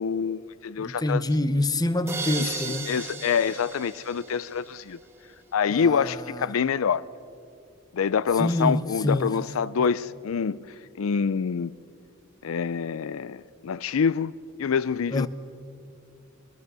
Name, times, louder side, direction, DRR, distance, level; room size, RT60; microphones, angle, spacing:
voice 1, 0.0-1.2 2.4-5.0 5.5-7.0 7.9-10.6 11.0-11.7 12.4-14.3 14.6-15.3, left 6 dB, 85° left, 0.4 m, -26 dB
voice 2, 0.8-2.9 5.7-6.5 8.4-9.3 15.1-15.3, left 1 dB, 20° left, 0.8 m, -26 dB
sound 1, 2.1-4.9, right 4 dB, 10° right, 2.1 m, -35 dB
24.0 x 20.0 x 6.8 m
head